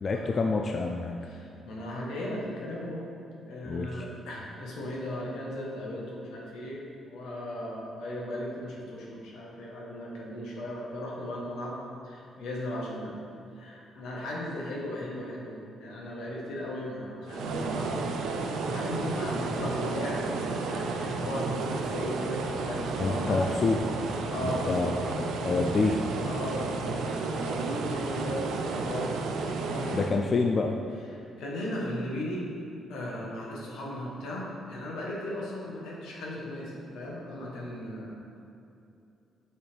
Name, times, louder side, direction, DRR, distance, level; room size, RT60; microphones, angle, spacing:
voice 1, 0.0-1.2 3.7-4.1 23.0-23.8 24.4-26.0 29.9-30.8, left 3 dB, 45° left, 2 dB, 0.3 m, -28 dB
voice 2, 1.3-3.0 3.5-11.8 12.0-13.1 13.5-17.9 18.7-20.3 20.7-23.7 24.3-25.0 26.2-30.4 31.1-32.4 32.9-38.4, left 1 dB, 85° left, -3 dB, 1.1 m, -37 dB
sound 1, 17.3-30.2, right 3 dB, 80° right, 0.5 m, -32 dB
6.4 x 3.3 x 4.5 m, 2.6 s
cardioid pair, 90°, 0 cm